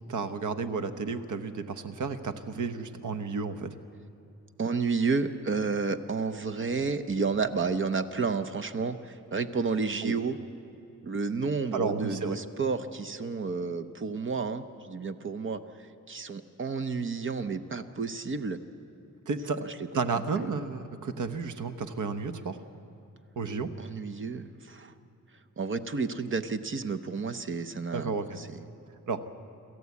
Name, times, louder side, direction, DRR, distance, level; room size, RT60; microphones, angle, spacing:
voice 1, 0.1-3.7 10.0-10.1 11.7-12.4 19.3-19.6 19.9-22.6 23.4-23.7 27.9-28.4 29.1-29.2, right 4 dB, 70° right, 9 dB, 1.1 m, -32 dB
voice 2, 4.6-10.4 11.0-15.6 16.1-18.6 19.9-20.0 20.4-20.5 23.8-24.9 25.6-28.6, right 4 dB, 40° right, 11 dB, 0.7 m, -31 dB
27.0 x 13.5 x 8.4 m, 2.6 s
wide cardioid pair, 165°, 31 cm